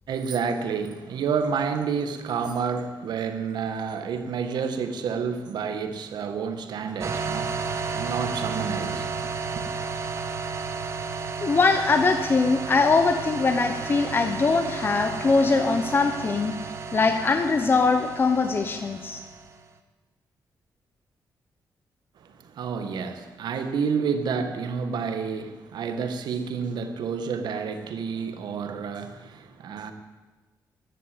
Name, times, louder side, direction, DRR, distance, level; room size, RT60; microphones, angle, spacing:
voice 1, 0.1-9.8 22.2-29.9, right 6 dB, 85° right, 8 dB, 1.6 m, -30 dB
sound 1, 7.0-19.6, right 5 dB, 40° right, 1.2 m, -33 dB
voice 2, 11.4-16.5 16.9-19.2, left 4 dB, 30° left, 7 dB, 0.9 m, -22 dB
15.0 x 11.0 x 8.6 m, 1.2 s
wide cardioid pair, 160°, 7 cm